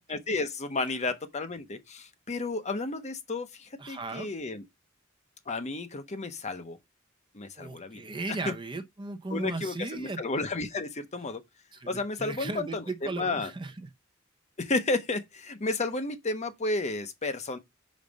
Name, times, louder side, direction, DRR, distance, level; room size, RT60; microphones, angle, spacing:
voice 1, 0.1-4.6 5.5-6.8 7.3-8.0 8.3-8.5 9.3-11.4 11.9-13.5 14.6-17.6, left 3 dB, 35° left, 0.9 m, -32 dB
voice 2, 3.8-4.3 7.6-10.2 11.7-13.9, right 3 dB, 25° right, 0.7 m, -36 dB
5.3 x 4.0 x 5.2 m
head